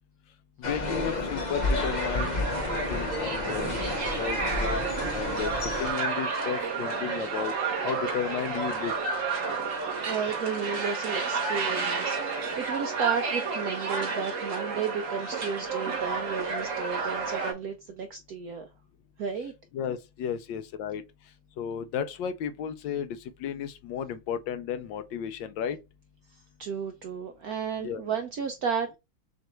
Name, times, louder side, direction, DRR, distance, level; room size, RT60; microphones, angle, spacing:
voice 1, 0.6-2.4 2.7-3.7 4.2-4.8 5.1-7.5 7.8-8.9 19.7-21.0 21.6-25.8 27.8-28.0, left 8 dB, 75° left, 1.3 m, -33 dB
sound 1, 0.6-5.9, left 2 dB, 60° left, 0.4 m, -30 dB
sound 2, 1.5-17.5, right 4 dB, 45° right, 1.2 m, -31 dB
voice 2, 10.0-18.7 19.2-19.5 26.3-29.0, right 6 dB, 75° right, 0.8 m, -33 dB
6.4 x 2.4 x 3.0 m
omnidirectional pair, 2.2 m